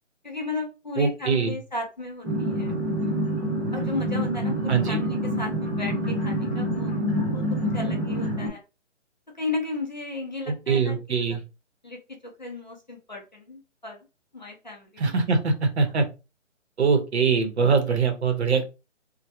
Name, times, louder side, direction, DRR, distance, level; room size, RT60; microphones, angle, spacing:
voice 1, 0.2-2.8 3.7-7.4 7.7-8.6 9.4-11.4 11.8-14.0 14.3-15.1, left 3 dB, 40° left, 0 dB, 0.4 m, -35 dB
voice 2, 1.0-1.5 4.7-5.0 10.7-11.4 15.0-16.1 16.8-18.6, right 5 dB, 60° right, 6 dB, 0.7 m, -22 dB
sound 1, 2.2-8.5, equal, 15° right, 0.7 m, -27 dB
2.1 x 2.1 x 2.8 m, 0.28 s
hypercardioid pair, 170°, 37 cm